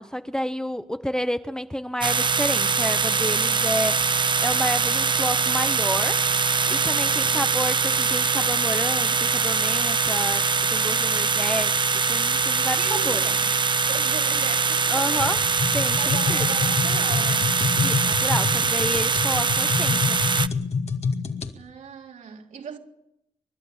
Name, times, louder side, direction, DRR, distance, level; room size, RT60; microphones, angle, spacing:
voice 1, 0.0-6.2 6.7-13.2 14.9-15.4 15.7-16.5 17.8-20.2, equal, 5° left, 0.8 m, -30 dB
sound 1, 2.0-20.5, right 5 dB, 35° right, 0.8 m, -23 dB
voice 2, 7.1-7.5 12.8-13.5 13.9-15.4 16.0-17.6 21.6-22.8, right 6 dB, 75° right, 3.8 m, -37 dB
sound 2, 15.2-21.5, left 5 dB, 55° left, 2.1 m, -27 dB
30.0 x 12.5 x 8.8 m
cardioid pair, 100°, 13 cm